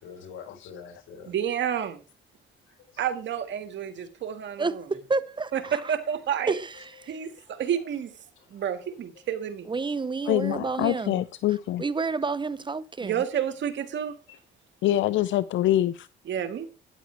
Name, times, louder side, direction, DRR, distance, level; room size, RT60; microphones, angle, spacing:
voice 1, 0.0-1.3 2.7-3.0 6.8-7.6 8.4-8.7 14.3-14.4, left 6 dB, 90° left, 4.0 m, -47 dB
voice 2, 1.3-2.0 3.0-4.8 5.5-6.5 7.1-8.1 8.5-9.7 13.0-14.2 16.3-16.7, right 9 dB, 65° right, 1.9 m, -30 dB
voice 3, 4.6-5.9 6.5-7.1 9.7-11.2 11.8-13.2, right 4 dB, 25° right, 0.7 m, -30 dB
voice 4, 10.3-11.8 14.8-16.1, left 13 dB, 75° left, 0.5 m, -25 dB
12.5 x 10.0 x 3.4 m
cardioid pair, 90°, 20 cm